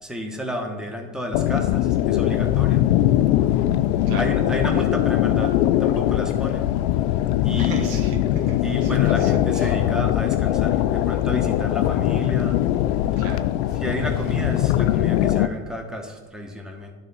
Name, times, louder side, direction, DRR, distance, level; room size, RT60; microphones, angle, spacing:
voice 1, 0.0-2.9 4.2-6.7 7.4-8.1 8.6-12.6 13.8-16.9, equal, ahead, 2 dB, 1.3 m, -31 dB
sound 1, 1.3-15.5, left 13 dB, 80° left, 0.5 m, -21 dB
voice 2, 4.1-4.4 7.6-9.7 13.2-13.8, right 2 dB, 65° right, 2 dB, 1.7 m, -35 dB
10.5 x 4.0 x 5.6 m, 1.3 s
supercardioid pair, 85°, 33 cm